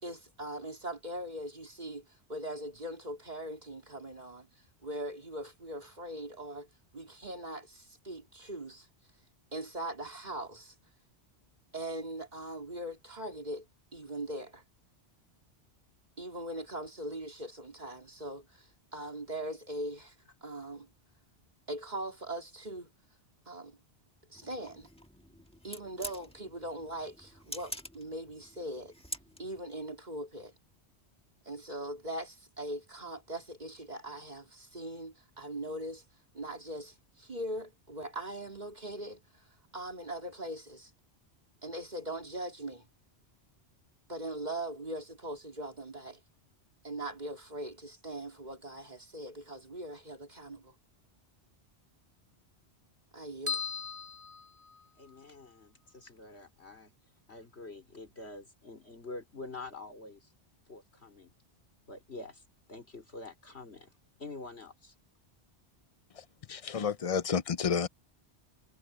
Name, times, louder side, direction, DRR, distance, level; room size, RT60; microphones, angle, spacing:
voice 1, 0.0-4.5 4.8-6.7 6.9-8.9 9.5-10.7 11.7-13.7 13.9-14.6 16.2-20.1 20.4-20.9 21.7-22.9 23.5-23.8 24.3-24.9 25.6-28.9 29.4-30.5 31.5-36.0 36.3-39.2 39.7-40.9 41.6-42.9 44.1-46.2 46.8-50.7 53.1-53.6, right 1 dB, 40° right, 3.8 m, -40 dB
sound 1, 24.3-29.7, equal, 5° left, 1.5 m, -47 dB
sound 2, 53.5-55.2, left 5 dB, 15° right, 2.6 m, -38 dB
voice 2, 55.0-56.9 57.3-60.3 60.7-61.3 61.9-62.4 62.7-63.9 64.2-64.9, left 3 dB, 75° left, 4.5 m, -46 dB
voice 3, 66.1-67.9, left 6 dB, 45° left, 0.5 m, -31 dB
omnidirectional pair, 1.1 m